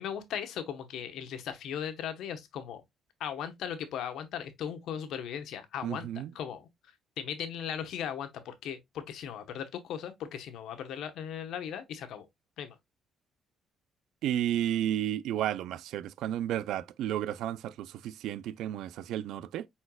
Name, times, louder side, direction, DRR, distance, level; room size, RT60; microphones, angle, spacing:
voice 1, 0.0-2.8 3.2-6.7 7.2-12.3 12.6-12.8, left 9 dB, 80° left, 0.9 m, -38 dB
voice 2, 5.8-6.3 14.2-19.7, right 11 dB, 85° right, 0.3 m, -32 dB
4.8 x 4.3 x 2.2 m
cardioid pair, 90°, 0 cm